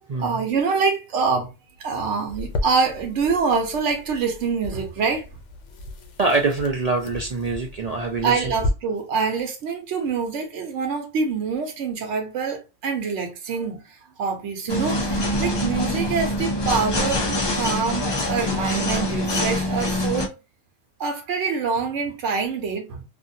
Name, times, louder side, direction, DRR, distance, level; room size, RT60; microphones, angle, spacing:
voice 1, 0.2-1.5 1.8-5.3 8.2-20.3 21.0-23.0, right 5 dB, 85° right, 1.0 m, -25 dB
sound 1, 2.3-8.7, left 1 dB, 85° left, 1.0 m, -34 dB
voice 2, 6.2-8.5, right 3 dB, 55° right, 0.4 m, -24 dB
sound 2, 14.7-20.3, left 1 dB, 40° left, 0.4 m, -24 dB
2.6 x 2.5 x 2.6 m
omnidirectional pair, 1.2 m